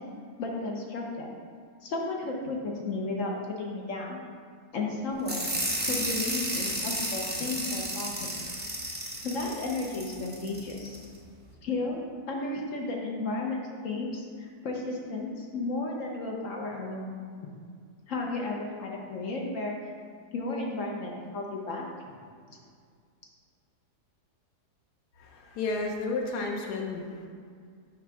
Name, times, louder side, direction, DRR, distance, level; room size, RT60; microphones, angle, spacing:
voice 1, 0.4-1.3 1.8-4.2 4.7-5.5 5.9-8.4 9.2-11.0 11.6-12.0 12.3-13.6 13.8-17.1 18.1-19.8 20.3-21.9, left 3 dB, 60° left, -1 dB, 1.1 m, -33 dB
sound 1, 5.3-11.0, right 1 dB, 15° right, 0.4 m, -33 dB
voice 2, 25.2-27.3, left 3 dB, 85° left, 0 dB, 1.3 m, -32 dB
6.8 x 3.1 x 5.8 m, 2.1 s
omnidirectional pair, 1.7 m